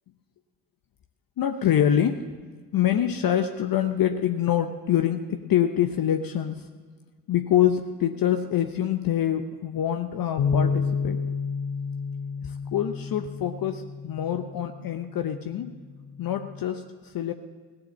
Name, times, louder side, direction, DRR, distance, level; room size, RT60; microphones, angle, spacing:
voice 1, 1.4-2.3 2.7-6.7 7.3-11.2 12.4-15.8 16.2-17.3, left 10 dB, 50° left, 7 dB, 0.9 m, -25 dB
Bass guitar, 10.4-16.6, left 5 dB, 75° left, 1.0 m, -30 dB
17.0 x 7.7 x 7.3 m, 1.5 s
hypercardioid pair, 45°, 45 cm